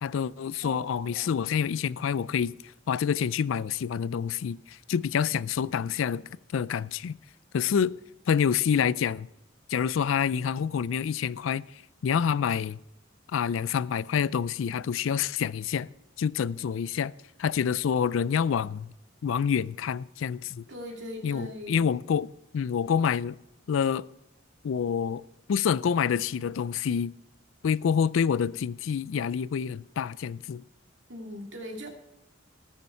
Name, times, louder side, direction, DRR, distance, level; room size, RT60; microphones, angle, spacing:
voice 1, 0.0-2.6 2.9-6.2 6.5-7.2 7.5-7.9 8.3-9.3 9.7-12.8 13.3-15.9 16.2-17.1 17.4-18.9 19.2-20.6 21.2-23.4 23.7-24.1 24.6-25.2 25.5-27.1 27.6-30.6, left 7 dB, 80° left, 0.4 m, -27 dB
voice 2, 0.6-1.3 20.7-21.9 31.1-31.9, left 1 dB, 65° right, 2.6 m, -40 dB
19.0 x 6.7 x 4.5 m
head